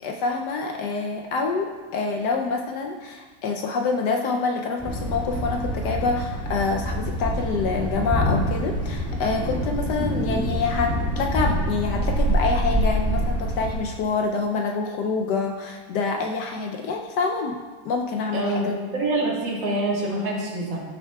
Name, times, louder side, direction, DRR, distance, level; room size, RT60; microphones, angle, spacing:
voice 1, 0.0-17.6 17.8-18.7, left 4 dB, 75° left, 3 dB, 1.0 m, -26 dB
Thunder, 4.8-13.8, right 1 dB, 5° right, 1.4 m, -26 dB
voice 2, 18.3-20.8, right 1 dB, 70° right, -4 dB, 2.3 m, -26 dB
13.0 x 6.3 x 2.2 m, 1.4 s
omnidirectional pair, 2.1 m